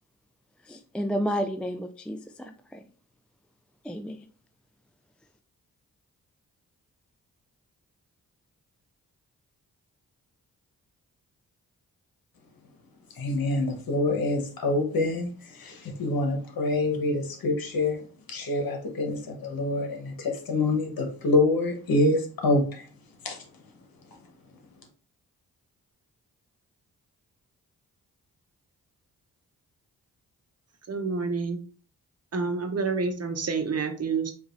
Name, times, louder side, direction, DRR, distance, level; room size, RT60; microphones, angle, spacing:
voice 1, 0.6-2.8 3.8-4.2, equal, 5° left, 0.3 m, -31 dB
voice 2, 13.2-18.0 18.3-22.9 23.2-23.4, left 2 dB, 70° left, 1.1 m, -26 dB
voice 3, 30.9-31.6 32.3-34.3, right 4 dB, 40° right, 0.9 m, -28 dB
4.9 x 2.6 x 2.5 m
supercardioid pair, 45°, 36 cm